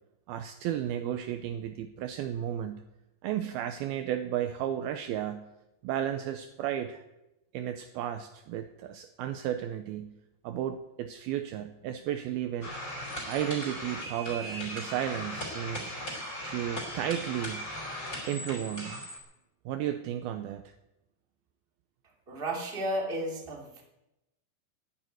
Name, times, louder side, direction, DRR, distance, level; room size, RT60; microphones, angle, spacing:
voice 1, 0.3-2.9 3.2-5.5 5.8-7.0 7.5-10.2 10.4-12.8 13.2-15.9 16.4-17.7 18.3-19.1 19.7-20.7, right 11 dB, 80° right, 8 dB, 2.3 m, -33 dB
sound 1, 12.6-19.2, equal, 20° left, 4.3 m, -38 dB
voice 2, 22.3-23.8, right 1 dB, 15° right, 0 dB, 2.2 m, -33 dB
12.0 x 10.5 x 9.4 m, 0.92 s
omnidirectional pair, 5.0 m